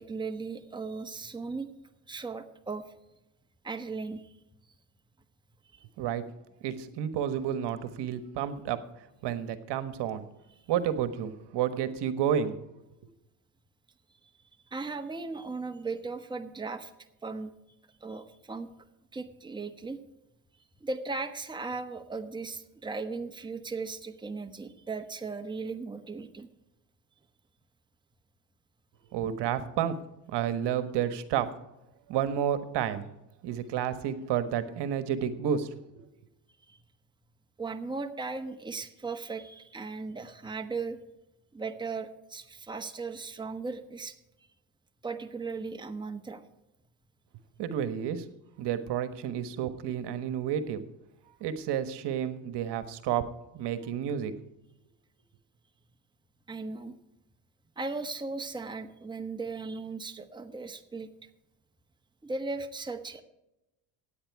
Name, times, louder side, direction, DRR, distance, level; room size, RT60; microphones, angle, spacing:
voice 1, 0.0-1.7 2.1-2.9 3.6-4.3 5.7-5.9 14.7-16.9 17.2-17.5 18.0-18.7 19.1-20.0 20.8-26.5 36.7-36.8 37.6-41.0 41.5-44.2 45.0-46.4 56.5-57.0 57.8-61.3 62.2-63.2, right 4 dB, 10° right, 6 dB, 1.2 m, -37 dB
voice 2, 6.6-8.8 9.2-10.3 10.7-12.5 29.1-29.9 30.3-31.5 32.1-33.1 33.4-35.7 36.0-36.1 47.6-48.2 48.6-50.8 51.4-53.2 53.5-54.3, right 9 dB, 60° right, 11 dB, 1.4 m, -30 dB
16.0 x 9.2 x 4.7 m, 0.92 s
supercardioid pair, 85°, 46 cm